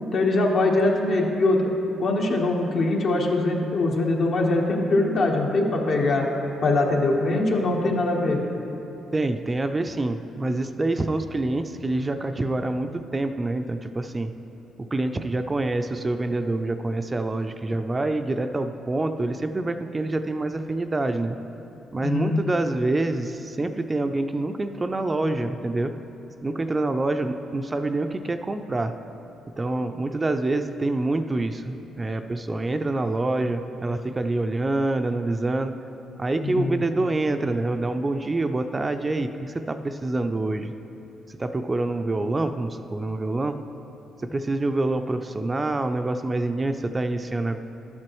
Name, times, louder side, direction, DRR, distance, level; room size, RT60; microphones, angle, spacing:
voice 1, 0.1-1.7 2.0-6.3 6.6-8.4 22.0-22.4 36.4-36.8, left 2 dB, 65° left, 0 dB, 1.2 m, -22 dB
voice 2, 9.1-14.3 14.9-21.4 21.9-25.9 26.4-28.9 29.6-35.7 36.2-40.7 41.3-43.6 44.3-47.6, right 2 dB, 25° right, 8 dB, 0.4 m, -26 dB
12.5 x 7.5 x 3.1 m, 2.9 s
cardioid pair, 90°, 0 cm